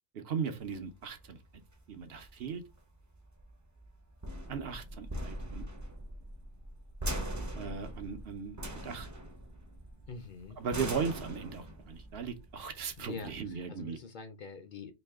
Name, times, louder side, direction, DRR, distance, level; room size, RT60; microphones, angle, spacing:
voice 1, 0.1-1.4 1.9-2.6 4.5-5.7 7.5-9.1 10.6-14.0, right 6 dB, 75° right, 0.9 m, -37 dB
sound 1, 0.6-13.6, right 1 dB, 20° right, 0.5 m, -42 dB
voice 2, 10.1-10.6 13.0-14.9, left 5 dB, 55° left, 0.7 m, -45 dB
3.1 x 2.8 x 3.4 m
omnidirectional pair, 1.0 m